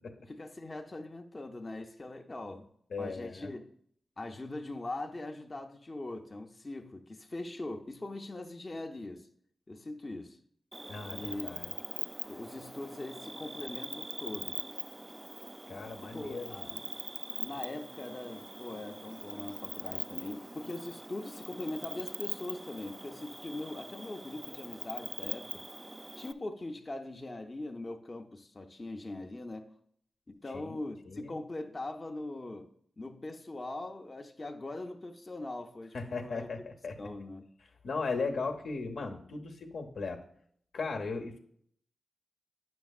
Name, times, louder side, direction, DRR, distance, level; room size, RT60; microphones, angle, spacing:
voice 1, 0.3-2.7 3.0-3.7 4.2-9.3 9.7-10.4 11.1-11.5 12.3-14.6 16.0-16.8 17.4-25.6 26.2-29.7 30.3-32.7 33.0-36.7 37.0-37.5, left 2 dB, 35° left, 0.6 m, -41 dB
voice 2, 2.9-3.5 10.9-11.7 15.7-16.7 30.5-31.4 35.9-37.0 37.8-40.2 40.7-41.4, left 4 dB, 80° left, 0.8 m, -37 dB
Cricket, 10.7-26.3, right 1 dB, 20° right, 0.3 m, -42 dB
8.9 x 6.1 x 2.3 m
cardioid pair, 60°, 0 cm